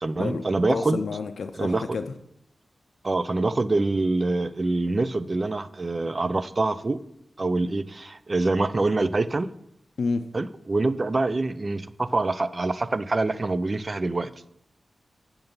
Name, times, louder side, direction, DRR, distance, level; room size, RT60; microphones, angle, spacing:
voice 1, 0.0-1.0 1.6-2.0 3.0-7.0 7.4-9.5 10.3-14.3, right 2 dB, 40° right, 14 dB, 0.5 m, -25 dB
voice 2, 0.7-2.1 10.0-10.3, left 4 dB, 80° left, 8 dB, 0.5 m, -29 dB
7.9 x 6.9 x 5.3 m, 0.75 s
cardioid pair, 55°, 0 cm